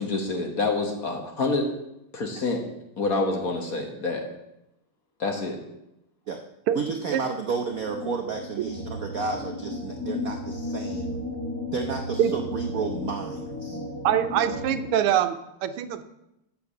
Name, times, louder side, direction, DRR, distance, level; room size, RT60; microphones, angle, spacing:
voice 1, 0.0-1.7 2.1-2.6 3.0-4.3 5.2-5.6, left 3 dB, 45° left, 3 dB, 1.5 m, -27 dB
voice 2, 6.7-11.2 11.7-13.8, right 5 dB, 65° right, 5 dB, 0.9 m, -32 dB
sound 1, 7.5-14.9, left 1 dB, 5° left, 1.4 m, -34 dB
voice 3, 14.0-16.0, right 10 dB, 80° right, 10 dB, 1.6 m, -24 dB
8.7 x 7.1 x 6.4 m, 0.86 s
omnidirectional pair, 2.4 m